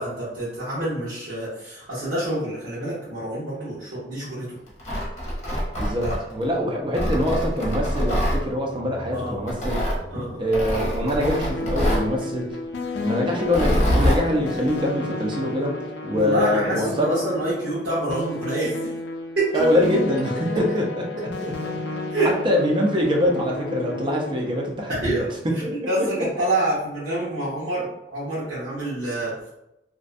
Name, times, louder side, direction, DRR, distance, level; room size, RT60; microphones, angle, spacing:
voice 1, 0.0-4.6 6.0-6.2 9.1-9.4 10.1-10.4 16.1-18.9 19.4-19.6 22.1-22.3 24.9-25.3 25.7-27.9 28.1-29.3, right 1 dB, 75° right, -10 dB, 0.9 m, -27 dB
Tearing, 4.7-6.4 6.9-8.4 9.5-10.0 10.5-12.1 13.4-14.2, equal, 40° left, 0.9 m, -24 dB
voice 2, 5.8-9.8 10.4-12.6 13.0-15.8 16.0-17.2 19.5-21.3 22.2-25.2 25.6-25.7, left 1 dB, 25° right, 0 dB, 0.4 m, -24 dB
sound 1, 8.4-12.9, right 1 dB, 15° left, 0.6 m, -45 dB
sound 2, 11.2-24.7, left 3 dB, 75° left, 0.4 m, -32 dB
2.5 x 2.1 x 2.5 m, 0.87 s
head